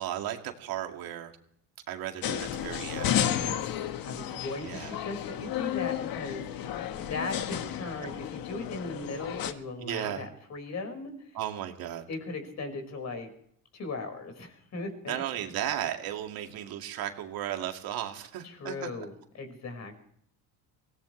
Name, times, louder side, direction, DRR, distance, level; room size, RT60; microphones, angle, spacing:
voice 1, 0.0-1.3 1.9-3.2 4.6-5.0 9.8-10.3 11.3-12.1 15.1-18.9, right 11 dB, 65° right, 4 dB, 2.3 m, -35 dB
sound 1, 2.2-9.5, left 10 dB, 60° left, 1.5 m, -32 dB
voice 2, 3.3-3.6 4.0-11.4 12.1-13.3 13.7-15.2 18.4-20.0, left 3 dB, 45° left, 6 dB, 5.3 m, -38 dB
23.5 x 17.5 x 3.3 m, 0.68 s
cardioid pair, 110°, 38 cm